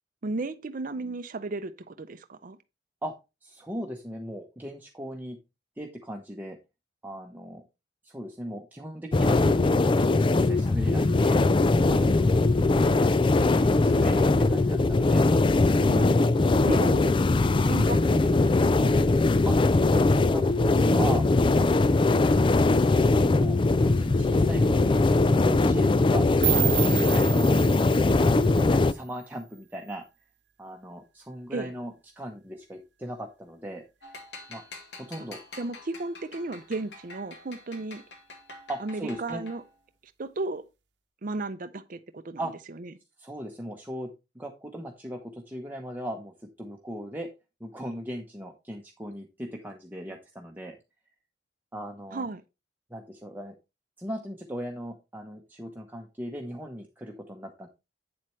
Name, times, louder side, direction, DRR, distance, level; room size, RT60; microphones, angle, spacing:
voice 1, 0.2-2.6 15.8-16.2 16.7-17.1 17.6-19.0 31.5-31.7 35.6-38.0 38.8-39.6 40.2-40.6 41.2-42.4 42.8-42.9 52.1-52.4, right 2 dB, 50° right, 0.6 m, -34 dB
voice 2, 3.4-5.4 5.8-6.6 7.0-7.6 8.0-10.1 10.3-13.1 13.5-15.3 19.4-21.2 21.5-22.0 22.3-25.0 25.4-26.3 26.8-27.5 28.1-30.0 30.6-33.8 34.5-34.6 35.0-35.4 38.7-39.4 42.4-42.5 43.2-47.3 47.6-50.8 51.7-52.3 52.9-53.5 54.0-57.7, equal, 10° right, 1.0 m, -38 dB
sound 1, 9.1-28.9, left 2 dB, 30° left, 0.4 m, -21 dB
sound 2, 26.4-29.4, right 17 dB, 75° right, 0.9 m, -31 dB
sound 3, 34.0-39.8, left 2 dB, 70° left, 2.1 m, -47 dB
8.7 x 7.6 x 3.2 m
head